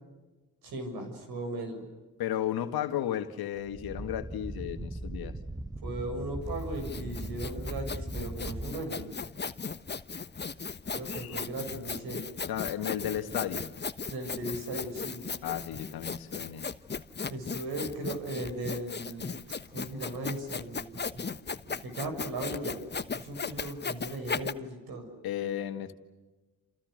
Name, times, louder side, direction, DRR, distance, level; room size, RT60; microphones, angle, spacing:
voice 1, 0.6-1.9 5.8-9.1 10.9-12.2 14.1-15.2 17.3-21.3 21.7-22.8 23.1-25.1, right 1 dB, 70° right, 7.2 m, -37 dB
voice 2, 2.2-5.4 11.1-11.4 12.5-13.7 15.4-16.7 25.2-25.9, left 11 dB, 70° left, 1.8 m, -34 dB
sound 1, 3.6-8.7, right 1 dB, 10° right, 1.3 m, -39 dB
Sawing, 6.5-24.5, left 5 dB, 25° left, 1.2 m, -37 dB
29.0 x 28.5 x 6.5 m
hypercardioid pair, 45°, 38 cm